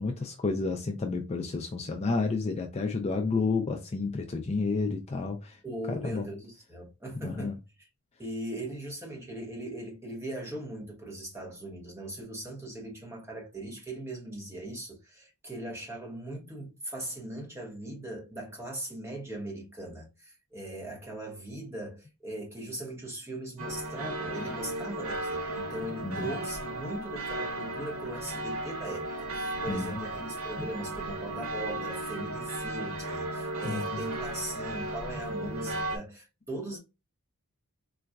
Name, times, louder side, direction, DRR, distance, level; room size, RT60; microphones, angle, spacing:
voice 1, 0.0-5.6 6.0-6.3 7.2-7.5 26.0-26.3 29.7-29.9 33.6-34.0, left 4 dB, 30° left, 0.3 m, -30 dB
voice 2, 5.6-7.9 8.2-36.8, right 1 dB, 10° right, 0.9 m, -39 dB
sound 1, 23.6-36.0, right 1 dB, 65° right, 0.9 m, -35 dB
3.9 x 2.3 x 2.3 m
head